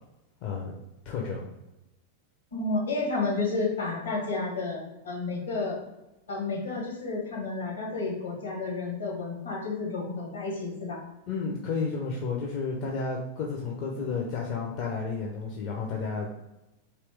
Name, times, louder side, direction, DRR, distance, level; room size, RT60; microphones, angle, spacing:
voice 1, 0.4-0.8 1.0-1.5 11.3-16.3, left 4 dB, 40° left, -1 dB, 0.6 m, -32 dB
voice 2, 2.5-5.8 6.3-11.0 13.9-14.0, left 3 dB, 70° left, -3 dB, 1.4 m, -31 dB
3.0 x 2.9 x 3.3 m, 0.96 s
figure-of-eight pair, 90°, 0 cm